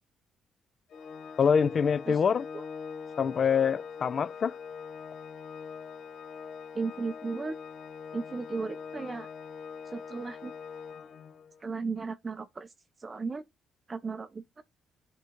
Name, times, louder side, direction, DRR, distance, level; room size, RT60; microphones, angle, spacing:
Organ, 0.9-11.7, left 6 dB, 80° left, 1.0 m, -43 dB
voice 1, 1.4-2.5 3.2-4.5, left 6 dB, 50° left, 0.4 m, -25 dB
voice 2, 6.7-7.6 8.1-9.3 9.9-10.5 11.6-12.7 13.0-13.4 13.9-14.6, right 4 dB, 30° right, 0.4 m, -35 dB
10.0 x 3.6 x 3.0 m
cardioid pair, 90°, 0 cm